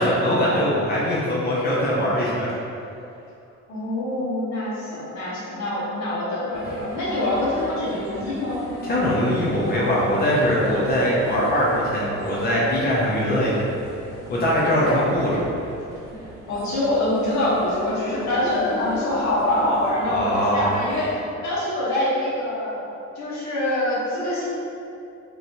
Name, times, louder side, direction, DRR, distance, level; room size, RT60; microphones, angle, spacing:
voice 1, 0.0-2.5 8.8-13.7 14.3-15.4 20.1-20.7, equal, 30° left, -6 dB, 0.6 m, -21 dB
voice 2, 3.7-8.6 14.7-15.1 16.5-22.8 23.1-24.5, left 1 dB, 70° left, -8 dB, 1.1 m, -25 dB
sound 1, 6.5-21.2, right 1 dB, 80° right, 1.1 m, -38 dB
3.1 x 2.7 x 2.6 m, 2.6 s
cardioid pair, 90°, 30 cm